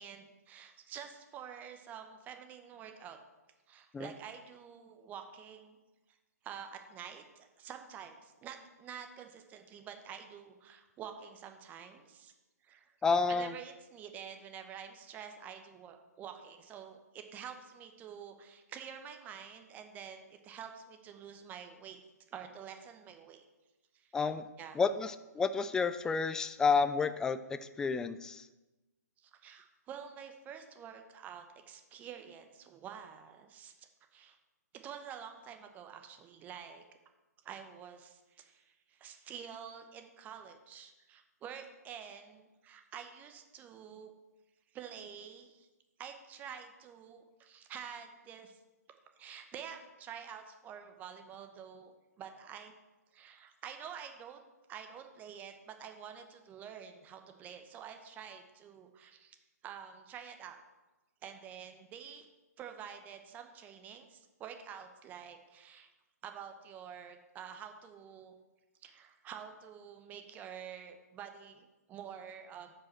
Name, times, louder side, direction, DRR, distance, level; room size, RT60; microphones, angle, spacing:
voice 1, 0.0-3.2 3.7-5.8 6.4-12.3 12.6-13.0 13.3-22.0 22.3-23.4 23.9-24.1 24.6-24.8 29.2-34.4 34.7-36.8 37.4-44.1 44.7-45.7 46.0-48.6 49.2-51.9 52.2-52.7 53.1-54.4 54.7-59.4 59.6-60.6 61.2-62.3 62.6-65.9 66.2-68.3 68.8-72.7, right 8 dB, 20° right, 6 dB, 0.8 m, -48 dB
voice 2, 13.0-13.5 24.1-24.4 24.8-28.5, left 5 dB, 5° left, 11 dB, 0.3 m, -30 dB
13.0 x 5.1 x 4.4 m, 1.1 s
figure-of-eight pair, 130°, 9 cm